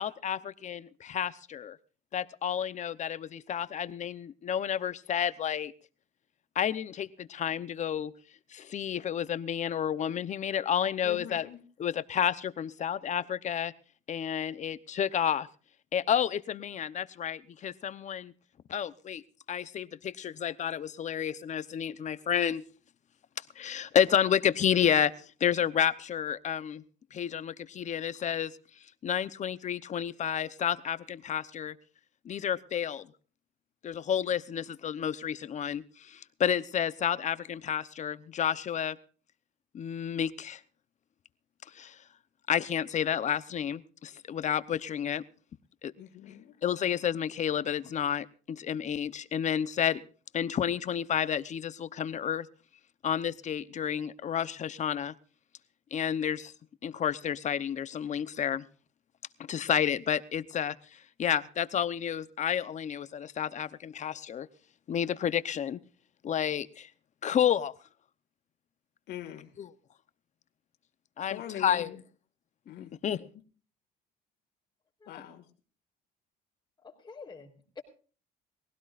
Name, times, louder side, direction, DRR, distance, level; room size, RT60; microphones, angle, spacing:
voice 1, 0.0-1.8 2.1-5.7 6.5-8.1 8.5-11.5 11.8-13.7 14.1-15.5 15.9-18.3 18.7-19.2 19.5-22.6 23.6-25.1 25.4-26.8 27.1-28.5 29.0-31.7 32.2-33.1 33.8-39.0 39.7-40.6 41.7-42.0 42.5-45.2 45.8-45.9 46.6-50.0 50.3-52.5 53.0-55.1 55.9-56.5 56.8-58.6 59.5-64.5 64.9-65.8 66.2-66.9 67.2-67.7 69.6-69.7 71.2-72.0 73.0-73.3, left 9 dB, 45° left, 14 dB, 0.9 m, -30 dB
voice 2, 11.0-11.6 46.0-46.5 69.1-69.5 71.3-72.0 72.7-73.2 75.1-75.4, left 11 dB, 75° left, 3 dB, 2.0 m, -43 dB
voice 3, 76.8-77.8, left 5 dB, 25° left, -6 dB, 3.9 m, -48 dB
21.5 x 16.5 x 2.5 m, 0.39 s
cardioid pair, 110°, 17 cm